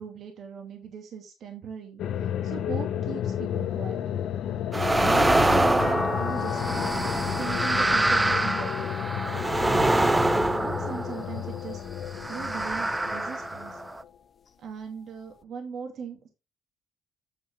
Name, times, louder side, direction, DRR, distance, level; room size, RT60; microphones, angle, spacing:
voice 1, 0.0-4.0 5.0-7.0 7.4-8.9 9.5-11.8 12.3-13.8 14.6-16.3, right 6 dB, 70° right, 3 dB, 2.4 m, -39 dB
sound 1, 2.0-14.1, left 10 dB, 80° left, 0.8 m, -32 dB
sound 2, 4.7-11.5 12.1-14.0, right 2 dB, 15° right, 0.5 m, -25 dB
sound 3, 5.8-12.1 12.7-14.0 15.4-15.5, left 6 dB, 45° left, 0.6 m, -40 dB
8.8 x 6.5 x 3.4 m, 0.26 s
cardioid pair, 90°, 0 cm